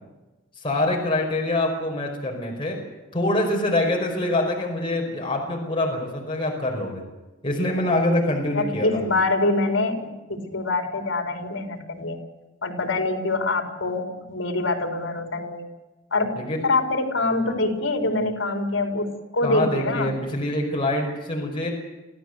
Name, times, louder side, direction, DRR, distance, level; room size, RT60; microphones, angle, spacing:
voice 1, 0.6-2.8 3.1-7.0 7.4-9.0 16.4-16.6 19.4-21.7, left 1 dB, 25° left, -1 dB, 5.2 m, -25 dB
voice 2, 8.5-12.2 12.6-15.6 16.1-16.4 16.6-19.1 19.3-20.2, left 2 dB, 75° left, 4 dB, 4.1 m, -25 dB
26.0 x 15.5 x 8.0 m, 1.1 s
head